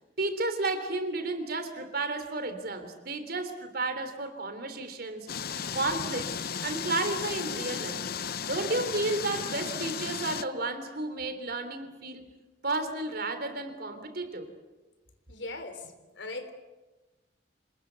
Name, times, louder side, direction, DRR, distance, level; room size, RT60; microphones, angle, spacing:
voice 1, 0.2-5.3 5.7-8.0 8.5-12.3 12.6-14.5, right 2 dB, 60° right, 8 dB, 3.4 m, -32 dB
sound 1, 5.3-10.4, left 7 dB, 55° left, 0.8 m, -35 dB
voice 2, 15.3-16.5, left 2 dB, 75° left, 9 dB, 3.5 m, -39 dB
27.0 x 20.5 x 8.2 m, 1.1 s
head